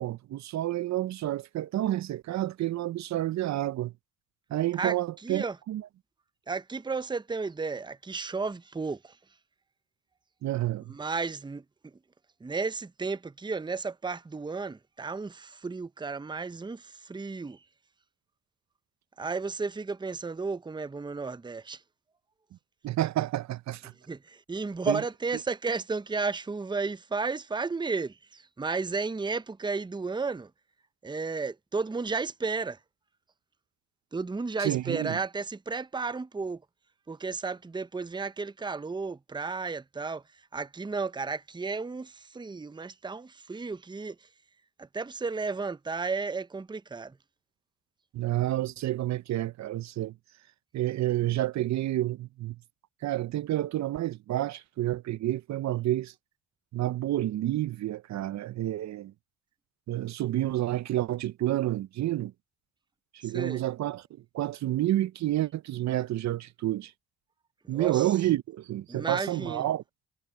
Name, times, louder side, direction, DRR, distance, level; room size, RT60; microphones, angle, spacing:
voice 1, 0.0-3.9 4.5-5.8 10.4-10.9 22.8-23.9 24.9-25.0 34.6-35.2 48.1-50.1 50.7-52.6 53.0-56.1 56.7-59.1 59.9-62.3 63.1-64.1 64.3-66.9 67.7-69.8, right 14 dB, 65° right, 0.8 m, -29 dB
voice 2, 5.2-5.6 6.5-9.2 10.9-11.6 12.4-17.6 19.2-21.8 24.1-30.5 31.0-32.8 34.1-36.6 37.1-40.2 40.5-44.2 44.8-47.2 63.2-63.6 67.6-68.1 68.9-69.7, right 4 dB, 15° right, 0.7 m, -33 dB
supercardioid pair, 55°, 30 cm